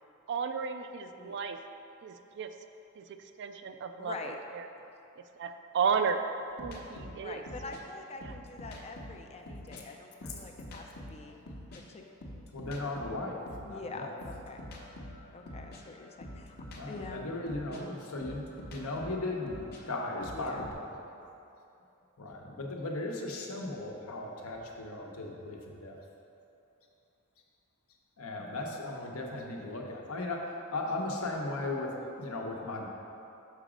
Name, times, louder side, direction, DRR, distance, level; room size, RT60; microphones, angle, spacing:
voice 1, 0.3-1.6 2.0-2.5 3.0-3.1 3.4-4.7 5.4-6.2 6.6-7.4 8.2-8.3, right 6 dB, 55° right, 7 dB, 0.4 m, -33 dB
voice 2, 4.0-4.4 7.2-11.4 11.9-12.0 13.7-14.7 15.3-16.6 16.9-17.3 17.7-17.9 20.3-20.7 28.4-28.6 31.5-31.8, left 3 dB, 30° left, 3 dB, 0.4 m, -45 dB
sound 1, 6.6-9.8 10.2-13.8 14.2-20.7, left 1 dB, 45° left, 0.9 m, -46 dB
voice 3, 12.5-13.4 13.6-14.1 16.8-18.4 18.7-19.6 19.9-20.8 22.2-26.0 28.2-30.4 30.7-32.9, left 2 dB, 75° left, 0 dB, 0.9 m, -37 dB
6.6 x 4.9 x 5.0 m, 2.8 s
head